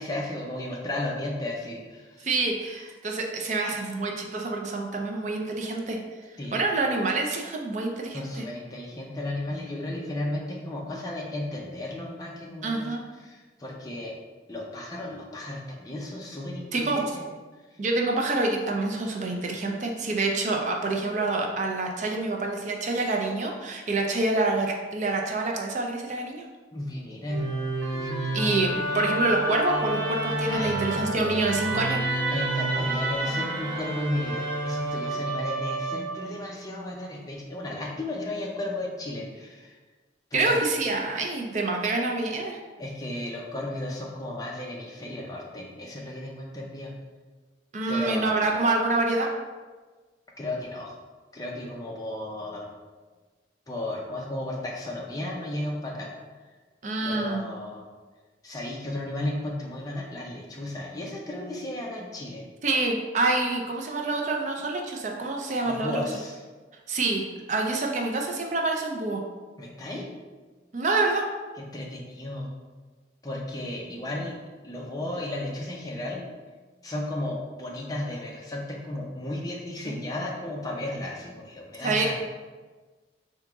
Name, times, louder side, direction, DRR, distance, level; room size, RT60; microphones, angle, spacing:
voice 1, 0.0-2.3 6.4-6.6 8.1-12.9 13.2-14.1 14.5-17.2 26.7-27.6 28.0-28.7 30.5-31.4 32.3-39.8 40.3-40.6 42.8-46.9 47.9-48.4 50.4-50.9 51.3-52.7 53.7-56.1 57.0-57.8 58.4-62.4 65.7-66.4 69.6-70.2 71.7-72.5 73.2-74.4 74.6-76.3 76.8-82.1, left 1 dB, 20° left, -2 dB, 0.5 m, -34 dB
voice 2, 2.2-6.0 6.5-8.4 12.6-13.0 16.7-17.1 17.8-26.4 28.3-32.0 40.3-42.6 47.7-49.3 56.8-57.4 62.6-66.0 66.9-69.2 70.7-71.3 81.8-82.1, right 2 dB, 40° right, 1 dB, 0.4 m, -27 dB
Musical instrument, 27.3-36.5, right 2 dB, 85° right, 0.8 m, -29 dB
3.5 x 2.8 x 3.5 m, 1.3 s
head